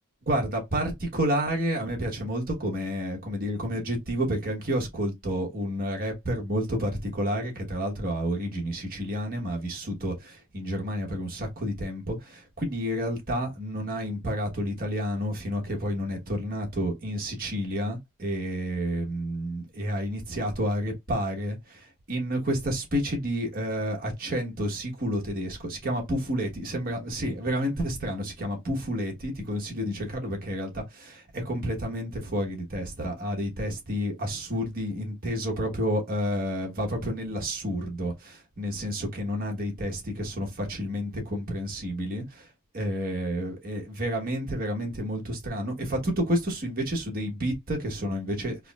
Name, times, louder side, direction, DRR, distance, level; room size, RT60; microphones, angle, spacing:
voice 1, 0.3-42.5 42.7-48.7, equal, 40° right, 1.1 m, -30 dB
4.7 x 2.0 x 2.3 m
head